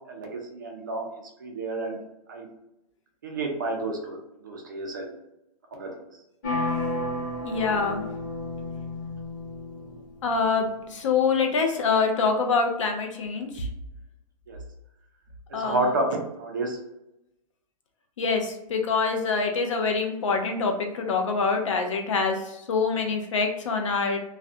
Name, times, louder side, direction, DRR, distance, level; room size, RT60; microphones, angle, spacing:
voice 1, 0.1-1.1 1.4-2.0 2.3-2.5 3.2-4.2 4.4-5.1 5.7-5.9 14.5-14.6 15.5-16.1 16.4-16.8, right 2 dB, 30° right, 1 dB, 0.3 m, -30 dB
sound 1, 6.4-10.2, left 2 dB, 30° left, 0.8 m, -31 dB
voice 2, 7.4-8.1 10.2-13.7 15.5-15.9 18.2-24.2, left 4 dB, 50° left, 4 dB, 0.5 m, -25 dB
2.4 x 2.1 x 2.6 m, 0.88 s
hypercardioid pair, 170°, 20 cm